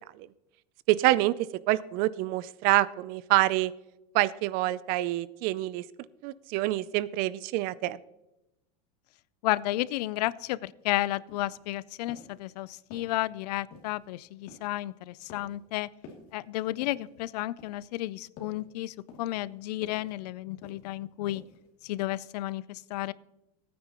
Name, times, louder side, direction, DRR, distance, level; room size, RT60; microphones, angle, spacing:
voice 1, 0.9-1.4 1.7-3.7 4.1-5.8 6.2-8.0, right 16 dB, 45° right, 19 dB, 0.5 m, -26 dB
voice 2, 9.4-15.9 16.3-21.4 21.8-23.1, left 16 dB, 85° left, 20 dB, 0.5 m, -32 dB
sound 1, 10.8-10.9 11.3-11.6 12.1-12.4 12.9-13.2 13.7-14.1 14.5-14.8 15.3-15.7 16.0-16.3 16.8-17.1 17.6-18.0 18.4-18.7 19.1-19.5 19.8-20.1 20.6-21.0 21.3-21.7 22.0-22.1, left 4 dB, 45° left, 2.6 m, -50 dB
18.5 x 9.5 x 3.0 m, 0.91 s
supercardioid pair, 150°, 20 cm